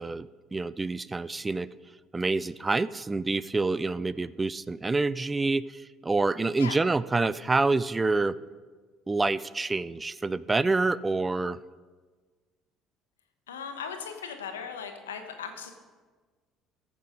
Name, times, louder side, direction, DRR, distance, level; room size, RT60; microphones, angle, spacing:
voice 1, 0.0-1.7 2.1-8.3 9.1-11.6, right 3 dB, 20° right, 18 dB, 0.4 m, -27 dB
voice 2, 13.5-15.7, left 6 dB, 90° left, 6 dB, 1.1 m, -38 dB
14.5 x 7.3 x 5.2 m, 1.4 s
hypercardioid pair, 60°, 0 cm